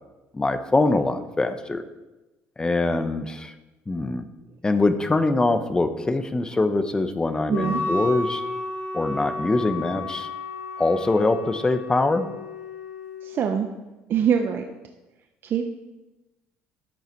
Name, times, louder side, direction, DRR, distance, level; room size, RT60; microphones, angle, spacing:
voice 1, 0.3-1.8 2.6-3.5 3.9-4.3 4.6-8.4 8.9-10.3 10.8-12.3, left 2 dB, 15° left, 9 dB, 0.9 m, -23 dB
Wind instrument woodwind instrument, 7.5-13.4, left 2 dB, 55° left, 4.1 m, -32 dB
voice 2, 7.5-7.8 13.2-13.7 14.1-14.6 15.4-15.7, right 8 dB, 50° right, 5 dB, 0.8 m, -23 dB
12.0 x 8.0 x 4.6 m, 1.1 s
cardioid pair, 105°, 5 cm